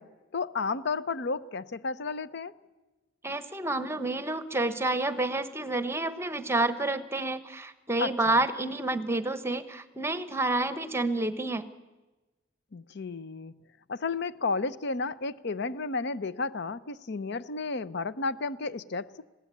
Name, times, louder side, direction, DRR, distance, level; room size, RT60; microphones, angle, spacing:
voice 1, 0.0-2.5 8.0-8.4 12.7-13.5 13.9-19.1, left 4 dB, 60° left, 16 dB, 0.7 m, -32 dB
voice 2, 3.2-11.7, right 2 dB, 15° right, 12 dB, 1.0 m, -29 dB
21.0 x 16.0 x 9.7 m, 1.2 s
head